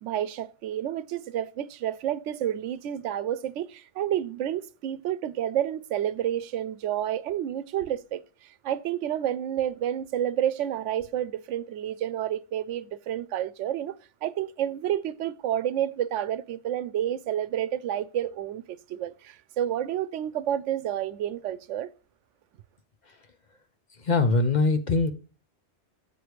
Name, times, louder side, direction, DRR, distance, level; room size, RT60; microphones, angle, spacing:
voice 1, 0.0-14.0 14.2-21.9, right 11 dB, 85° right, 0.9 m, -30 dB
voice 2, 24.0-25.1, left 3 dB, 45° left, 0.8 m, -22 dB
8.3 x 4.7 x 5.0 m
omnidirectional pair, 1.2 m